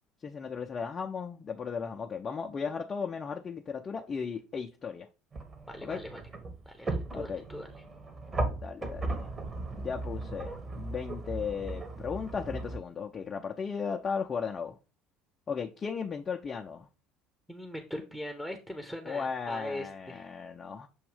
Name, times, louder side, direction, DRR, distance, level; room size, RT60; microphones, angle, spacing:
voice 1, 0.2-5.1 5.8-6.0 7.1-7.4 8.5-9.3 9.7-10.5 10.8-14.8 15.5-16.9 19.0-20.9, left 6 dB, 30° left, 0.6 m, -36 dB
sound 1, 5.3-12.8, right 2 dB, 30° right, 1.2 m, -37 dB
voice 2, 5.7-6.2 6.7-7.7 17.5-20.3, left 1 dB, ahead, 0.9 m, -40 dB
7.1 x 2.6 x 5.0 m
figure-of-eight pair, 60°, 0 cm